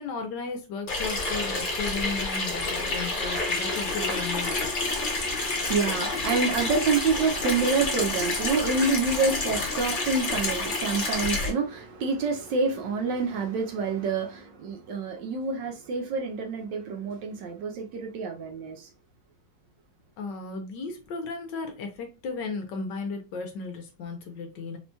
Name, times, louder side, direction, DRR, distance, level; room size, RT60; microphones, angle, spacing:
voice 1, 0.0-4.6 20.2-24.8, left 4 dB, 70° left, 1.2 m, -35 dB
Water tap faucet / Sink (filling or washing), 0.9-11.5, left 3 dB, 55° left, 0.5 m, -29 dB
voice 2, 4.8-18.9, right 4 dB, 70° right, 1.1 m, -28 dB
4.3 x 2.8 x 2.2 m
omnidirectional pair, 2.2 m